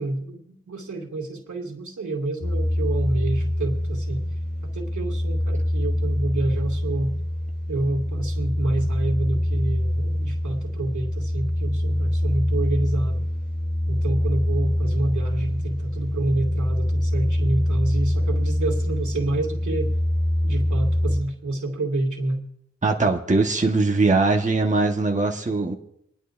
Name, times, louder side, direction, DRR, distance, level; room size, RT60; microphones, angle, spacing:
voice 1, 0.0-4.2 4.6-7.2 7.7-13.3 13.9-19.9 20.4-22.4, right 2 dB, 85° right, 0 dB, 2.3 m, -28 dB
sound 1, 2.4-21.2, left 1 dB, 35° left, 2.8 m, -24 dB
voice 2, 22.8-25.7, right 3 dB, 25° right, 1 dB, 1.2 m, -21 dB
27.0 x 11.0 x 2.6 m, 0.75 s
wide cardioid pair, 65°, 29 cm